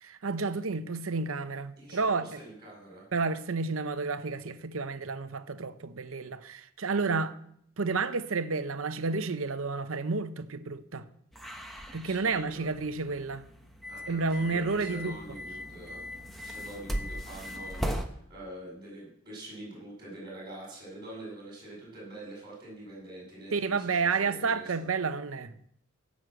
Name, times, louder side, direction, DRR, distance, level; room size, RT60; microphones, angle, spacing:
voice 1, 0.0-2.2 3.1-7.4 7.8-11.0 11.9-13.5 14.1-15.2 23.5-25.5, right 4 dB, 75° right, 0.8 m, -30 dB
voice 2, 1.8-3.0 12.0-12.7 13.9-16.0 16.4-24.6, right 1 dB, 20° right, 6.9 m, -45 dB
sound 1, 11.3-18.1, equal, ahead, 1.1 m, -38 dB
16.0 x 6.3 x 7.7 m
head